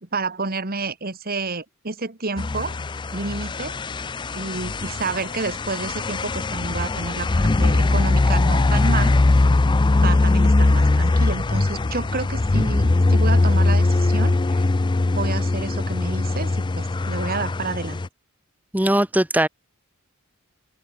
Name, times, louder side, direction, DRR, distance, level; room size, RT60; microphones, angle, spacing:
voice 1, 0.0-2.8 3.1-3.8 4.3-9.2 10.0-14.6 15.1-18.0, right 3 dB, 45° right, 2.1 m, -29 dB
sound 1, 2.4-18.1, left 2 dB, 20° left, 0.4 m, -20 dB
voice 2, 18.7-19.5, right 1 dB, 5° right, 1.4 m, -19 dB
open air
head